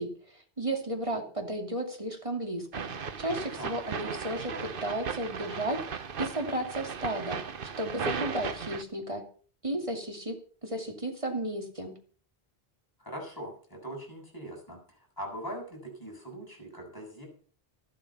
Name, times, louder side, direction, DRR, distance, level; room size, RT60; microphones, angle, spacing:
voice 1, 0.0-2.9 3.2-7.4 7.8-9.3 9.6-10.4 10.6-11.9, right 1 dB, 30° right, 3 dB, 2.7 m, -34 dB
sound 1, 2.7-8.8, right 6 dB, 55° right, 1.1 m, -36 dB
voice 2, 13.0-17.3, equal, 20° left, -1 dB, 6.7 m, -41 dB
13.5 x 12.5 x 5.6 m, 0.42 s
omnidirectional pair, 1.1 m